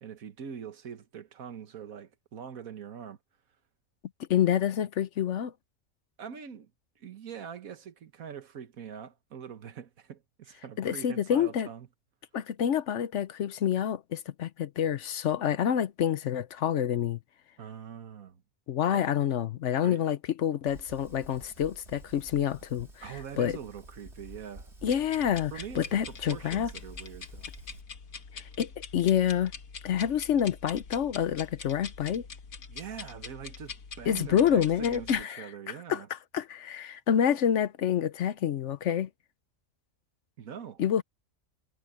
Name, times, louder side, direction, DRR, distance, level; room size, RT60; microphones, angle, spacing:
voice 1, 0.0-3.2 6.2-6.7 7.0-11.9 17.6-18.4 18.9-19.1 19.8-20.0 23.0-24.7 25.5-27.5 32.7-36.1 40.4-40.8, right 8 dB, 85° right, 1.7 m, -43 dB
voice 2, 4.3-5.5 10.8-11.7 12.3-17.2 18.7-23.0 23.4-23.6 24.8-26.7 28.3-29.5 29.8-32.2 34.1-35.4 35.9-39.1 40.8-41.0, left 9 dB, 65° left, 1.0 m, -28 dB
Fire, 20.7-27.8, right 1 dB, 50° right, 5.1 m, -50 dB
sound 1, 24.8-35.2, left 5 dB, 85° left, 1.9 m, -44 dB
omnidirectional pair, 1.4 m